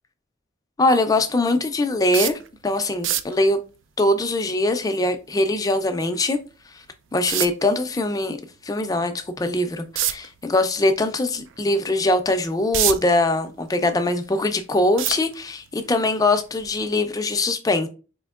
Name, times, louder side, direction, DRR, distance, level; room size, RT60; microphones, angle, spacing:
voice 1, 0.8-3.6 4.0-6.4 7.1-8.4 8.6-17.9, left 2 dB, 20° left, 0.4 m, -22 dB
sound 1, 2.1-2.5 2.9-3.4 6.1-6.2 7.3-7.7 9.9-10.3 10.8-11.0 11.5-11.6 12.3-13.2 13.6-14.3 15.0-15.7 16.6-16.8 17.1-17.2, right 11 dB, 65° right, 0.3 m, -24 dB
4.3 x 2.8 x 2.3 m
head